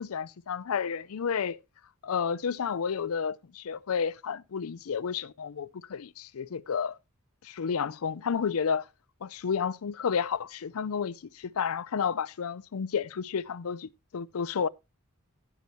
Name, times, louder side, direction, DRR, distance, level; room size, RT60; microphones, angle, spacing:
voice 1, 0.0-1.6 2.0-7.0 7.4-8.9 9.2-14.7, left 6 dB, 80° left, 0.5 m, -31 dB
14.5 x 6.9 x 3.0 m
head